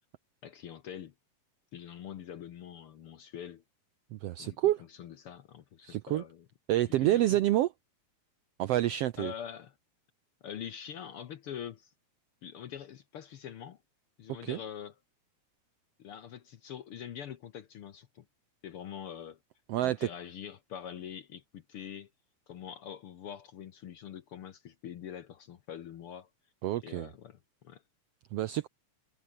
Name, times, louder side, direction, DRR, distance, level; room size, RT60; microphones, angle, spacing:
voice 1, 0.4-1.1 1.7-3.6 4.4-6.4 6.9-7.4 9.2-9.7 10.4-11.9 12.4-13.8 14.2-14.9 16.0-18.2 18.6-19.4 19.8-22.1 22.5-26.3 26.8-27.8, left 9 dB, 60° left, 1.5 m, -44 dB
voice 2, 4.1-4.8 5.8-6.2 6.7-7.7 8.6-9.3 14.4-14.6 19.7-20.1 26.6-27.1 28.3-28.7, right 14 dB, 80° right, 1.4 m, -28 dB
omnidirectional pair, 3.5 m